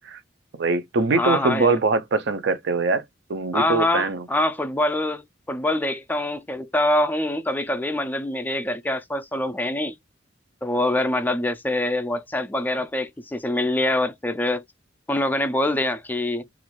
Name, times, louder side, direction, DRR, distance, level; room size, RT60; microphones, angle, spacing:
voice 1, 0.6-3.0 3.3-4.2, right 3 dB, 65° right, 0.5 m, -22 dB
voice 2, 1.2-1.8 3.5-10.0 10.6-14.6 15.1-16.5, left 1 dB, 10° left, 0.3 m, -24 dB
2.4 x 2.3 x 3.0 m
head